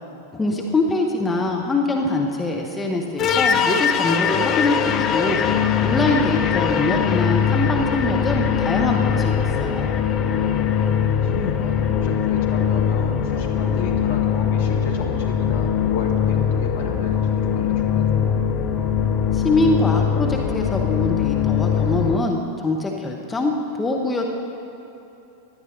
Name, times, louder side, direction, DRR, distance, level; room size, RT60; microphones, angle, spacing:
voice 1, 0.3-5.4 5.8-9.9 19.3-24.3, left 2 dB, 15° left, 1 dB, 1.1 m, -23 dB
voice 2, 1.2-1.6 11.2-18.1, left 3 dB, 55° left, 2 dB, 1.6 m, -33 dB
sound 1, 3.2-22.2, left 8 dB, 30° left, 0.7 m, -21 dB
16.5 x 11.0 x 4.0 m, 2.9 s
figure-of-eight pair, 90°, 0 cm